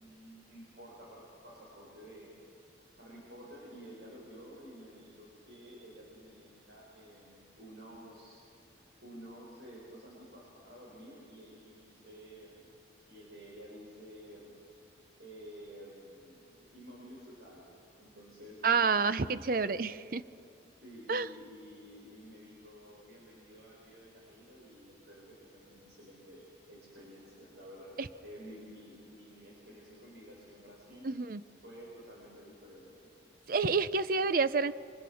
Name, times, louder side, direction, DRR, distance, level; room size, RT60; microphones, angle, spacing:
voice 1, 0.0-2.3 3.0-8.4 9.0-12.7 13.1-14.6 15.2-17.7 18.0-19.8 20.8-31.1 31.6-33.1, equal, 70° right, -3 dB, 5.7 m, -51 dB
voice 2, 18.6-20.2 21.1-21.3 28.0-28.1 31.0-31.4 33.5-34.7, right 4 dB, 50° right, 14 dB, 0.6 m, -28 dB
29.5 x 25.0 x 6.4 m, 2.4 s
head